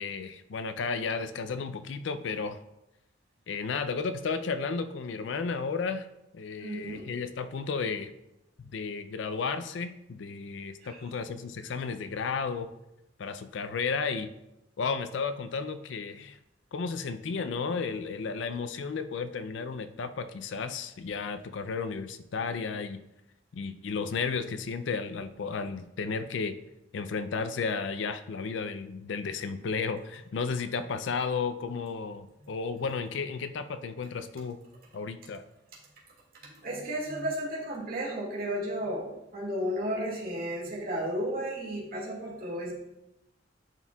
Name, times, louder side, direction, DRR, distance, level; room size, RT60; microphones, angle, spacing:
voice 1, 0.0-2.6 3.5-6.1 6.3-8.1 8.7-12.7 13.2-14.3 14.8-16.4 16.7-23.0 23.5-26.6 26.9-34.6 34.9-35.4, left 5 dB, 70° left, 10 dB, 0.4 m, -33 dB
voice 2, 6.6-7.1 10.8-11.0 36.4-42.7, equal, 55° right, -5 dB, 2.0 m, -33 dB
10.5 x 4.5 x 2.3 m, 0.88 s
head